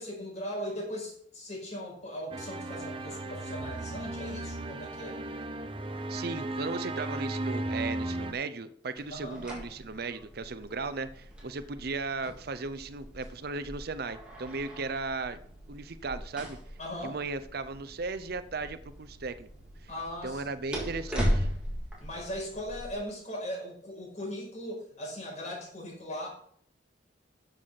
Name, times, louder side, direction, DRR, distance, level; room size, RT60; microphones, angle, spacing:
voice 1, 0.0-5.2 9.1-9.4 16.8-17.2 19.9-20.4 22.0-26.3, equal, 40° left, -1 dB, 5.3 m, -39 dB
sound 1, 2.3-8.3, right 2 dB, 30° right, 1.1 m, -35 dB
voice 2, 6.1-15.4 15.7-16.6 17.0-19.5 20.2-21.5, right 3 dB, 60° right, 13 dB, 0.7 m, -36 dB
sound 2, 9.0-22.9, equal, 5° right, 3.2 m, -38 dB
13.0 x 7.6 x 4.1 m, 0.65 s
head